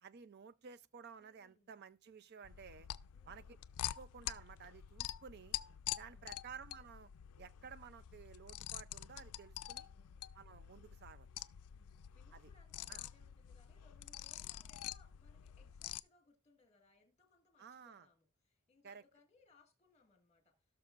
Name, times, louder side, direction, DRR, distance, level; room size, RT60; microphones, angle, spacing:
voice 1, 0.0-2.9 3.3-3.6 4.0-5.6 6.0-7.1 7.4-9.9 10.3-11.3 12.3-12.5 12.9-13.0 17.6-18.1 18.8-19.0, right 6 dB, 45° right, 0.4 m, -54 dB
voice 2, 1.2-1.7 3.1-3.5 6.1-6.4 9.7-10.4 11.7-20.6, left 3 dB, 30° left, 1.7 m, -70 dB
sound 1, 2.4-16.0, left 13 dB, 85° left, 0.4 m, -47 dB
17.0 x 6.2 x 2.4 m
head